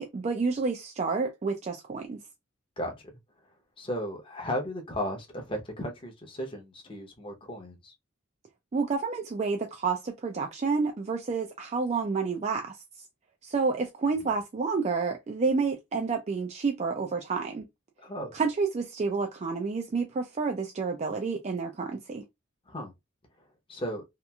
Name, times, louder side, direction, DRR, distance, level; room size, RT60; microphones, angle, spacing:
voice 1, 0.0-2.2 8.7-12.8 13.4-17.7 18.3-22.2, right 4 dB, 35° right, 0.3 m, -29 dB
voice 2, 3.8-7.9 18.0-18.3 22.7-22.9 23.7-24.0, equal, 25° left, 0.7 m, -35 dB
2.9 x 2.4 x 2.2 m
head